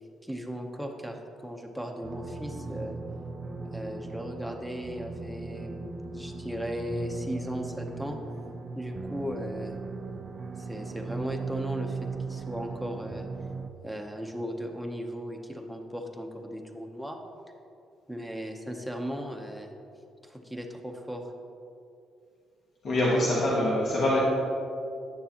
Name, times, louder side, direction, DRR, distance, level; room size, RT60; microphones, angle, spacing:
voice 1, 0.2-3.0 3.7-5.8 6.1-8.2 8.7-9.7 10.6-13.3 13.8-17.2 18.1-19.7 20.2-21.3, equal, ahead, 3 dB, 0.8 m, -37 dB
sound 1, 2.0-13.7, right 4 dB, 40° right, 0.4 m, -38 dB
voice 2, 22.8-24.2, left 1 dB, 55° left, -6 dB, 1.4 m, -24 dB
9.3 x 6.7 x 2.9 m, 2.6 s
cardioid pair, 90°, 0 cm